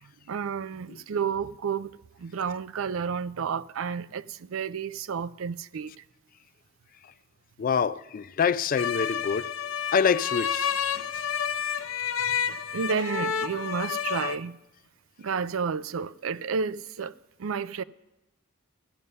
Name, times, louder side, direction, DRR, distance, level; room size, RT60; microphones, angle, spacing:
voice 1, 0.0-6.0 12.2-12.4 12.7-14.6 15.2-17.8, right 6 dB, 85° right, 0.4 m, -31 dB
voice 2, 7.6-9.5 9.9-10.7, left 6 dB, 45° left, 0.3 m, -25 dB
sound 1, 8.8-14.4, left 8 dB, 80° left, 0.7 m, -30 dB
15.0 x 11.0 x 5.4 m
head